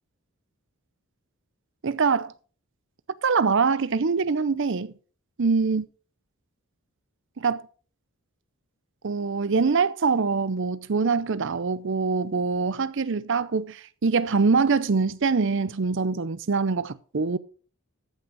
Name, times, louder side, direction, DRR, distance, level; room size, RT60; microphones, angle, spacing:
voice 1, 1.8-2.3 3.2-4.9 5.4-5.8 7.4-7.6 9.0-17.4, right 4 dB, 55° right, 0.6 m, -24 dB
14.0 x 6.2 x 4.6 m
head